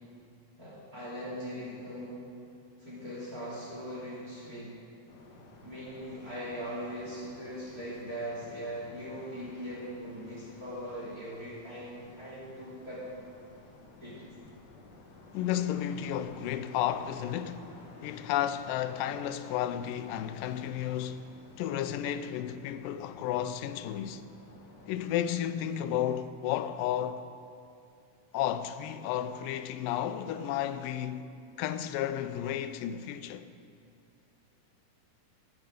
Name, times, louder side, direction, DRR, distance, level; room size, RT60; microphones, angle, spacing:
voice 1, 0.6-2.2 2.8-4.7 5.6-13.0 14.0-14.2, equal, 25° right, 3.1 m, -40 dB
sound 1, 5.1-24.9, left 2 dB, 50° left, 1.2 m, -53 dB
voice 2, 15.3-17.7 18.0-21.3 21.6-24.2 24.9-27.3 28.3-31.3 31.6-33.5, left 11 dB, 85° left, 2.3 m, -32 dB
15.0 x 13.0 x 5.1 m
omnidirectional pair, 3.9 m